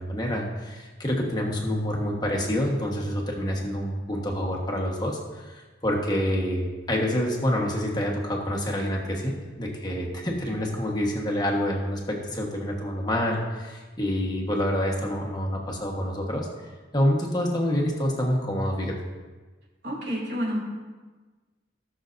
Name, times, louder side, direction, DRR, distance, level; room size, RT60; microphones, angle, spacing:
voice 1, 0.0-19.0, equal, 20° left, -1 dB, 1.3 m, -27 dB
voice 2, 19.8-20.6, equal, 55° right, -4 dB, 3.0 m, -29 dB
18.0 x 6.3 x 2.6 m, 1.3 s
head